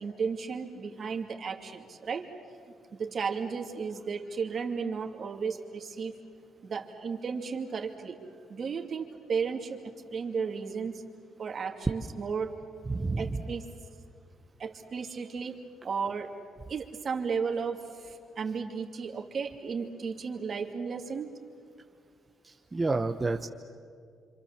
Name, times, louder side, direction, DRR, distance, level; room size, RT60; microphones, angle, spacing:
voice 1, 0.0-2.3 2.9-6.1 6.6-8.2 8.5-11.0 11.4-12.5 13.2-13.7 14.6-15.6 15.8-16.3 16.7-21.3, right 5 dB, 50° right, 3 dB, 2.5 m, -34 dB
voice 2, 12.9-13.4 22.4-23.5, right 3 dB, 20° right, 4 dB, 1.0 m, -30 dB
27.0 x 26.5 x 7.5 m, 2.2 s
cardioid pair, 90°, 0 cm